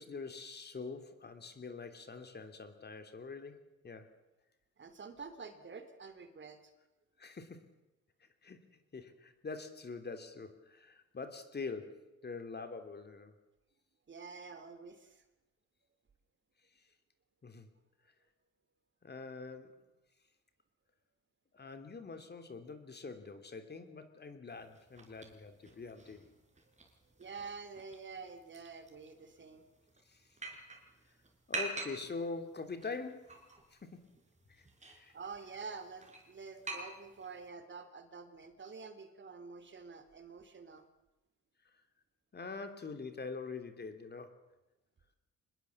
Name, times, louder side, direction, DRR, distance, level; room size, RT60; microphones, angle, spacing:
voice 1, 0.0-4.1 7.2-7.7 8.4-13.3 16.7-16.8 17.4-17.7 19.0-19.8 21.5-26.3 30.0-30.4 31.5-33.4 33.7-34.1 34.5-35.1 36.7-36.8 42.3-44.4, left 4 dB, 35° left, 7 dB, 3.1 m, -45 dB
voice 2, 4.8-6.7 14.1-15.2 27.2-29.7 35.1-40.9, right 5 dB, 40° right, 10 dB, 2.9 m, -48 dB
sound 1, 24.5-37.5, right 2 dB, 25° right, 5.1 m, -47 dB
24.5 x 20.5 x 7.3 m, 0.98 s
cardioid pair, 90°, 30 cm